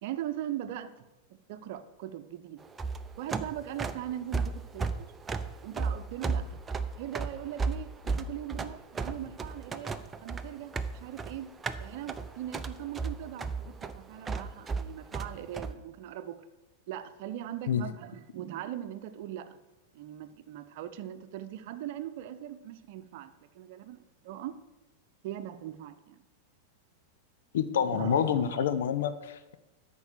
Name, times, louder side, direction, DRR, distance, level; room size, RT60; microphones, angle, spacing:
voice 1, 0.0-2.6 3.2-5.1 5.6-6.6 7.0-11.5 11.8-16.4 16.9-19.6 19.9-24.6 25.2-26.2 27.8-28.8, right 11 dB, 55° right, 12 dB, 0.8 m, -40 dB
sound 1, 2.6-15.7, right 4 dB, 20° right, 0.7 m, -34 dB
voice 2, 27.5-29.6, left 8 dB, 70° left, 12 dB, 0.9 m, -28 dB
13.0 x 5.4 x 6.7 m, 1.0 s
hypercardioid pair, 95°, 0 cm